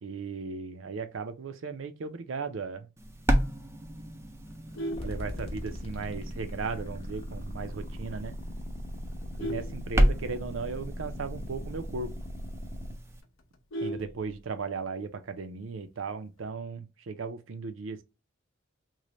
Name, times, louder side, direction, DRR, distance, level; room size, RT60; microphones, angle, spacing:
voice 1, 0.0-2.9 5.0-8.4 9.4-12.1 13.8-18.0, right 4 dB, 70° right, 0.5 m, -36 dB
sound 1, 3.0-13.2, equal, 15° right, 0.3 m, -32 dB
Vehicle horn car horn honking, 4.5-6.0 6.4-6.7 7.0-7.1 7.5-7.6 7.9-8.3 8.8-10.7 11.0-11.1 11.4-11.5 11.9-12.0 12.4-12.5 12.7-14.8 16.0-16.4, right 1 dB, 75° left, 0.6 m, -39 dB
sound 2, 4.9-12.9, equal, 30° left, 0.7 m, -39 dB
3.1 x 2.1 x 3.8 m
head